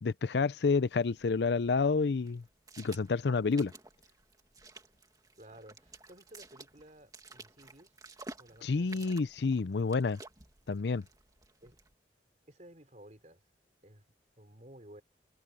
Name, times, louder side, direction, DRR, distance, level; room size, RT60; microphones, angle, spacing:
voice 1, 0.0-2.4 2.8-3.7 8.6-10.2 10.7-11.0, left 4 dB, 70° left, 0.5 m, -29 dB
sound 1, 0.9-11.9, right 3 dB, 20° right, 2.2 m, -53 dB
voice 2, 5.4-7.9 8.4-9.2 11.6-11.8 12.5-13.4 13.8-14.0 14.4-15.0, right 1 dB, 40° right, 4.9 m, -55 dB
open air
head